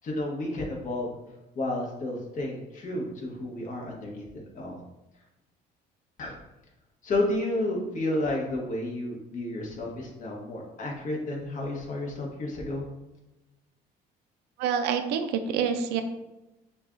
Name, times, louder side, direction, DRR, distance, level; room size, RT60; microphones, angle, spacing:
voice 1, 0.0-1.2 1.5-4.3 4.5-4.8 6.2-6.4 7.0-12.9, left 1 dB, 50° left, -1 dB, 1.2 m, -31 dB
voice 2, 14.6-16.0, right 7 dB, 90° right, 7 dB, 0.4 m, -27 dB
6.7 x 2.3 x 2.5 m, 0.98 s
cardioid pair, 110°, 17 cm